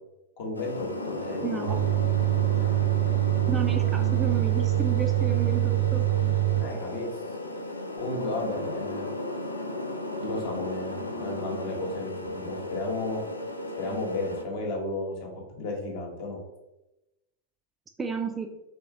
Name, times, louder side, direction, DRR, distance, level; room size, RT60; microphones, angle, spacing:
voice 1, 0.4-1.8 2.6-2.7 6.6-7.1 8.0-9.1 10.2-13.2 13.8-16.4, left 2 dB, 50° left, 0 dB, 1.0 m, -33 dB
sound 1, 0.5-14.4, left 2 dB, 80° left, 0.4 m, -35 dB
voice 2, 1.4-1.8 3.5-6.1 18.0-18.5, right 4 dB, 15° right, 4 dB, 0.4 m, -32 dB
sound 2, 1.7-6.6, right 18 dB, 70° right, 0.7 m, -24 dB
3.2 x 3.0 x 3.6 m, 0.97 s
figure-of-eight pair, 90°, 0 cm